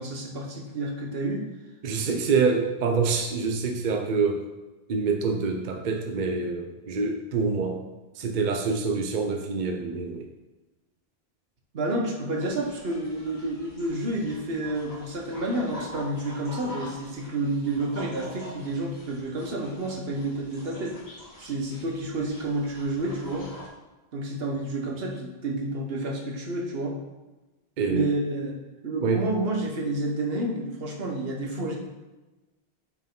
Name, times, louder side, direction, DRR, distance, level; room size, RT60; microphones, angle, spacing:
voice 1, 0.0-1.5 11.7-21.0 21.4-23.5 24.1-27.0 27.9-31.8, right 2 dB, 70° right, 0 dB, 1.2 m, -30 dB
voice 2, 1.8-4.4 4.9-7.8 8.2-10.3 27.8-28.1 29.0-29.3, right 4 dB, 55° right, 3 dB, 0.7 m, -26 dB
sound 1, 12.4-23.7, equal, 85° left, 2.2 m, -45 dB
6.4 x 4.6 x 3.7 m, 1.1 s
omnidirectional pair, 1.0 m